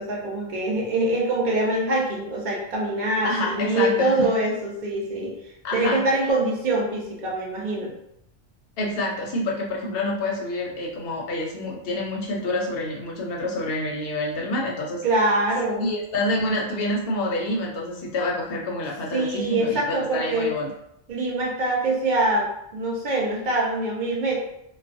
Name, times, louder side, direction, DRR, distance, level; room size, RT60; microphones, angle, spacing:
voice 1, 0.0-5.3 5.7-7.9 15.0-15.8 19.1-20.5 21.1-24.4, right 2 dB, 50° right, -3 dB, 0.7 m, -24 dB
voice 2, 3.2-4.1 5.6-6.0 8.8-15.0 15.8-20.7, left 1 dB, 60° left, -1 dB, 0.7 m, -27 dB
2.3 x 2.2 x 2.5 m, 0.78 s
omnidirectional pair, 1.2 m